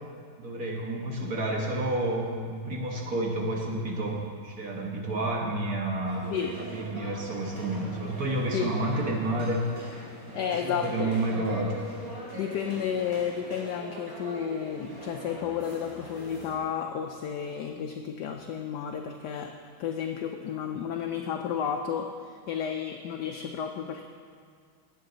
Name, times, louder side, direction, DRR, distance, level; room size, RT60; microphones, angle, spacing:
voice 1, 0.4-6.3 6.6-9.7 10.4-11.8, right 1 dB, 50° right, -1 dB, 1.7 m, -30 dB
sound 1, 6.0-16.6, right 1 dB, 30° right, 2.9 m, -42 dB
voice 2, 10.3-11.2 12.4-19.5 19.8-24.1, left 8 dB, 70° left, 4 dB, 1.1 m, -32 dB
18.0 x 7.9 x 3.9 m, 2.1 s
omnidirectional pair, 2.1 m